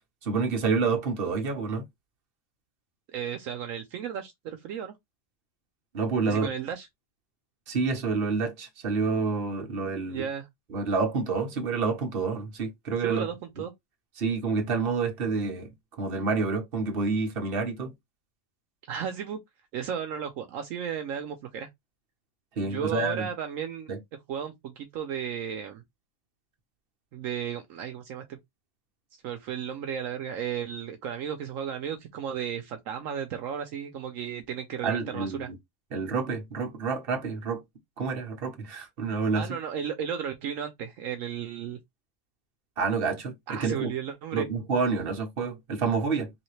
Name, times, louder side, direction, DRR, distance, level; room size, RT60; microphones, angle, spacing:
voice 1, 0.2-1.8 5.9-6.5 7.7-10.3 10.7-13.2 14.2-15.7 16.0-17.9 22.6-23.3 23.9-24.0 34.8-35.5 35.9-37.6 38.0-39.6 42.8-43.9 44.3-46.3, right 4 dB, 45° right, 1.1 m, -28 dB
voice 2, 3.1-4.9 6.3-6.9 10.1-10.5 13.0-13.7 18.9-19.4 19.7-21.7 22.6-23.9 24.3-25.8 27.1-28.4 29.2-35.5 39.3-41.8 43.5-44.5, right 8 dB, 75° right, 1.0 m, -34 dB
3.9 x 2.8 x 3.1 m
omnidirectional pair, 1.4 m